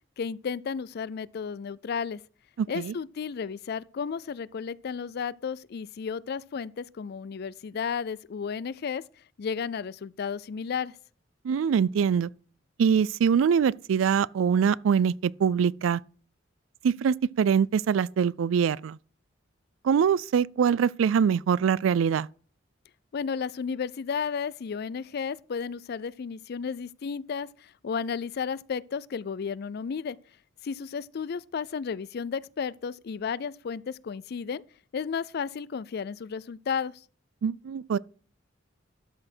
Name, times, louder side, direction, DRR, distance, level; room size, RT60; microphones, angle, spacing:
voice 1, 0.2-2.2 2.7-9.0 9.4-10.9 23.1-27.5 27.8-30.2 30.6-34.6 34.9-37.0, left 6 dB, 55° left, 0.4 m, -33 dB
voice 2, 2.6-2.9 11.4-12.3 12.8-16.0 16.8-19.0 19.8-22.3 37.4-38.0, right 7 dB, 85° right, 0.3 m, -23 dB
12.5 x 6.3 x 4.4 m
head